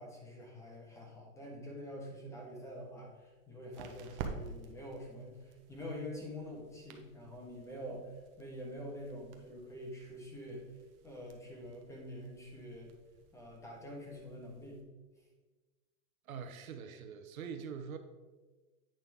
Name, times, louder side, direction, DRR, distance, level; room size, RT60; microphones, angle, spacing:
voice 1, 0.0-10.6 11.0-12.9 13.3-14.8, equal, 5° left, -1 dB, 1.4 m, -46 dB
sound 1, 2.4-14.8, right 5 dB, 45° right, 1.0 m, -51 dB
voice 2, 16.2-18.0, right 6 dB, 80° right, 8 dB, 1.0 m, -44 dB
8.9 x 5.6 x 3.6 m, 1.3 s
hypercardioid pair, 140°, 41 cm